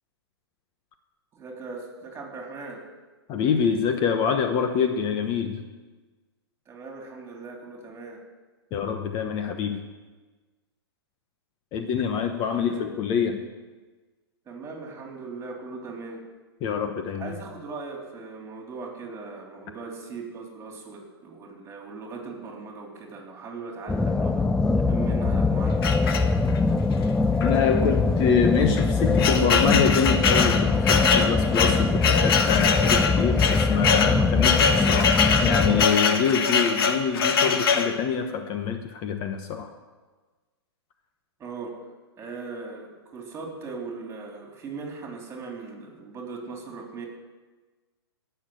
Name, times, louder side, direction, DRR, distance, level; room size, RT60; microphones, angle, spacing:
voice 1, 1.3-2.8 6.7-8.2 12.5-12.8 14.5-16.2 17.2-24.5 24.7-26.2 41.4-41.8 42.2-47.1, right 4 dB, 20° right, 1 dB, 3.5 m, -39 dB
voice 2, 3.3-5.6 8.7-9.8 11.7-13.5 16.6-17.3 27.4-39.7, left 6 dB, 35° left, 6 dB, 1.1 m, -25 dB
sound 1, 23.9-35.9, left 3 dB, 5° left, 0.4 m, -23 dB
sound 2, 25.8-26.7 27.4-27.5 27.8-27.9 28.6-38.0, left 5 dB, 60° left, 1.6 m, -23 dB
17.5 x 6.8 x 7.9 m, 1.3 s
hypercardioid pair, 120°, 14 cm